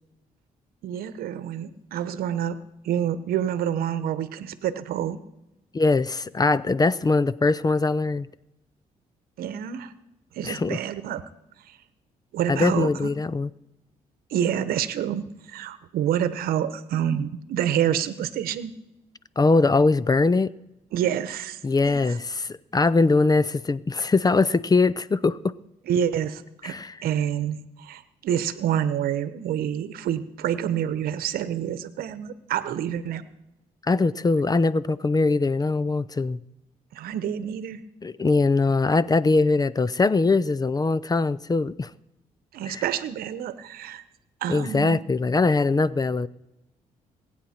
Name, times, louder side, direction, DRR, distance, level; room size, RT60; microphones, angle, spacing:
voice 1, 0.8-2.6 2.8-5.2 9.4-9.9 10.3-11.2 11.7-11.8 12.3-13.1 14.3-18.7 20.9-21.6 21.8-22.0 25.9-33.2 36.9-37.8 42.5-44.0 44.4-45.0, right 9 dB, 80° right, 13 dB, 0.9 m, -28 dB
voice 2, 5.7-8.3 10.4-10.8 12.5-13.5 19.4-20.5 21.6-25.5 26.6-26.9 33.9-36.4 38.0-41.9 42.7-42.8 44.5-46.3, left 3 dB, 25° left, 19 dB, 0.6 m, -22 dB
22.5 x 9.1 x 4.4 m, 0.92 s
supercardioid pair, 70°, 15 cm